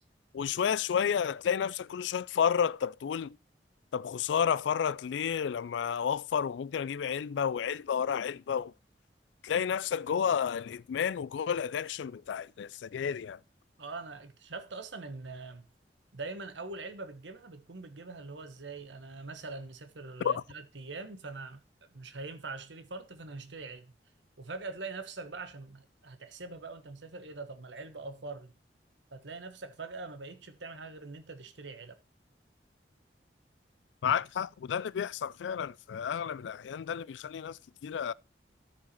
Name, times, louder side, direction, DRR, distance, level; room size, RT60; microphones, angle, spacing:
voice 1, 0.3-3.4 3.9-8.7 9.4-13.4 20.2-20.4 34.0-38.1, left 7 dB, 85° left, 0.3 m, -31 dB
voice 2, 13.8-15.7 16.1-23.9 24.4-28.5 29.1-32.0, right 3 dB, 85° right, 1.2 m, -43 dB
13.5 x 4.8 x 4.3 m
head